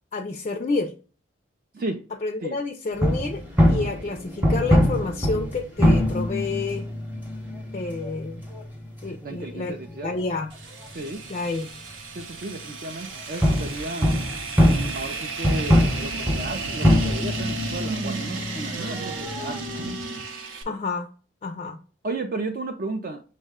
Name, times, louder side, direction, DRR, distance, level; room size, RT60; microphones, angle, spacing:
voice 1, 0.1-0.9 2.2-6.9 7.7-8.4 9.0-10.5 11.3-11.8 20.7-21.1 21.4-21.8, left 3 dB, 35° left, 6 dB, 0.3 m, -29 dB
sound 1, 3.0-10.9 11.2-11.3 12.2-12.3 13.4-19.9, equal, 10° right, 0.7 m, -24 dB
voice 2, 9.2-10.2 10.9-11.2 12.2-14.2 14.7-19.7 22.0-23.2, right 2 dB, 45° right, 4 dB, 0.4 m, -34 dB
sound 2, 10.5-20.6, right 3 dB, 80° right, 0.7 m, -34 dB
6.3 x 2.1 x 3.5 m, 0.38 s
head